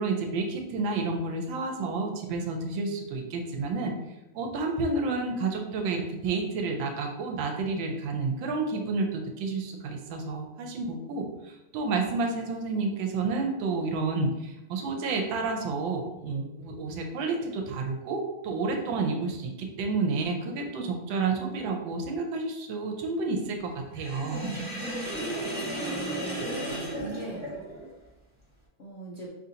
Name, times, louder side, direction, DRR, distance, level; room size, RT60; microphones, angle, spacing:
voice 1, 0.0-3.9 4.3-24.5, right 3 dB, 90° right, 3 dB, 1.4 m, -30 dB
Sink (filling or washing), 24.0-27.9, right 1 dB, 10° right, 0.4 m, -34 dB
voice 2, 25.7-27.4 28.8-29.3, right 1 dB, 65° left, -6 dB, 0.6 m, -41 dB
5.3 x 2.5 x 2.7 m, 0.92 s
omnidirectional pair, 2.1 m